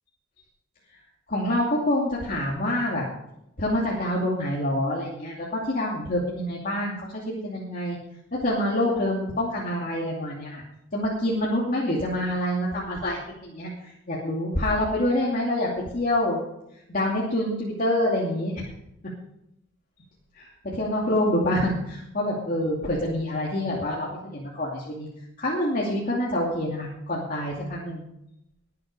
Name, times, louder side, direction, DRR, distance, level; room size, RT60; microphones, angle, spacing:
voice 1, 1.3-3.0 3.6-8.0 8.3-10.6 10.9-16.4 16.9-18.6 20.4-20.5 20.8-25.1 25.4-28.0, left 1 dB, 45° left, -4 dB, 2.6 m, -26 dB
21.0 x 8.7 x 4.9 m, 0.79 s
head